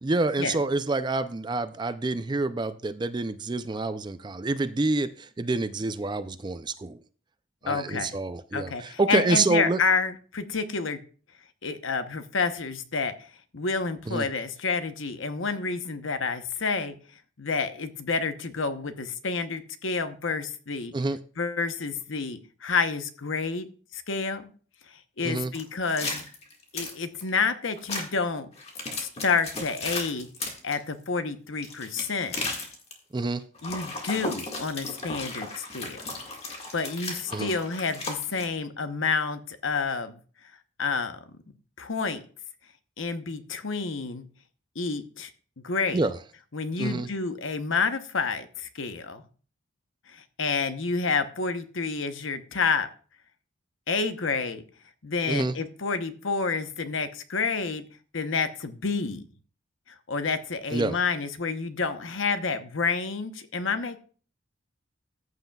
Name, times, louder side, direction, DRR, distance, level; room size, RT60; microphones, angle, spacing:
voice 1, 0.0-7.0 7.6-9.8 14.1-14.3 20.9-21.2 25.2-25.5 33.1-33.4 37.3-37.5 45.9-46.2 46.8-47.1 55.3-55.6 60.7-61.0, right 3 dB, 20° right, 12 dB, 0.4 m, -27 dB
voice 2, 7.7-8.2 8.5-11.0 11.6-13.1 13.5-16.9 17.4-20.9 21.4-23.7 23.9-24.5 25.2-26.2 26.7-28.5 29.0-30.3 30.6-32.4 33.6-36.0 36.7-40.2 40.8-41.4 41.8-42.2 43.0-44.3 44.7-45.3 45.6-46.0 46.5-49.2 50.1-52.9 53.9-54.6 55.0-57.8 58.1-59.3 60.1-64.0, left 4 dB, 70° left, 9 dB, 0.9 m, -29 dB
sound 1, 25.5-27.3 27.8-28.0 28.6-30.7 31.6-32.9 33.6-38.5, left 3 dB, 30° left, 1.8 m, -35 dB
14.5 x 7.9 x 2.3 m, 0.41 s
head